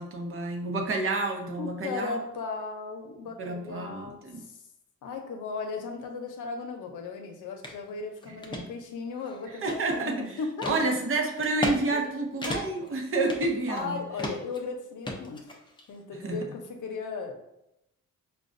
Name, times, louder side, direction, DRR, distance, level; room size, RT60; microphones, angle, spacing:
voice 1, 0.0-2.2 3.4-4.4 8.5-8.7 9.6-10.2 10.7-13.9 16.2-16.4, right 2 dB, 45° right, 2 dB, 0.7 m, -29 dB
voice 2, 1.6-4.6 5.0-10.7 11.9-12.0 13.7-15.5 15.9-17.4, left 4 dB, 70° left, 3 dB, 0.7 m, -36 dB
sound 1, 7.6-7.8 8.2-8.6 9.2-10.1 10.6-10.8 11.4-11.8 12.0-12.1 12.4-12.9 13.3-13.9 14.2-14.6 15.1-15.9, left 1 dB, 15° left, 0.5 m, -34 dB
5.0 x 2.2 x 2.5 m, 0.83 s
cardioid pair, 125°, 31 cm